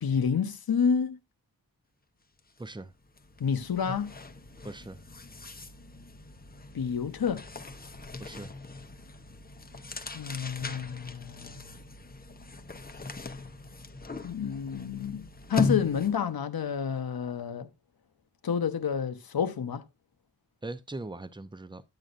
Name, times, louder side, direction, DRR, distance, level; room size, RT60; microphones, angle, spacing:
voice 1, 0.0-1.2 3.4-4.1 6.7-7.4 10.1-11.7 14.2-17.7 18.4-19.8, left 7 dB, 80° left, 0.8 m, -29 dB
sound 1, 2.4-2.6 2.9-16.3, left 3 dB, 25° left, 0.6 m, -39 dB
voice 2, 2.6-2.9 4.6-5.0 8.2-8.6 20.6-21.8, right 2 dB, 15° right, 0.6 m, -40 dB
9.6 x 9.0 x 2.5 m
wide cardioid pair, 90°, 36 cm